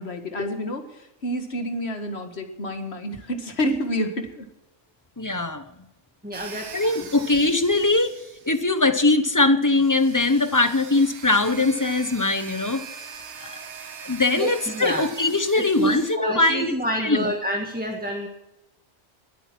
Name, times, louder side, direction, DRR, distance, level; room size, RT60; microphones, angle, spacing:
voice 1, 0.0-4.5, equal, 60° left, 6 dB, 2.1 m, -29 dB
voice 2, 5.2-5.6 6.7-12.8 13.4-13.6 14.0-16.7 17.0-17.3, left 2 dB, 15° left, 10 dB, 1.0 m, -21 dB
voice 3, 6.2-6.8 14.3-15.1 15.5-18.3, right 1 dB, 5° right, 1 dB, 1.6 m, -28 dB
sound 1, 6.3-8.7 9.6-16.2, right 7 dB, 65° right, 1.3 m, -41 dB
20.0 x 9.0 x 6.1 m, 0.95 s
omnidirectional pair, 1.3 m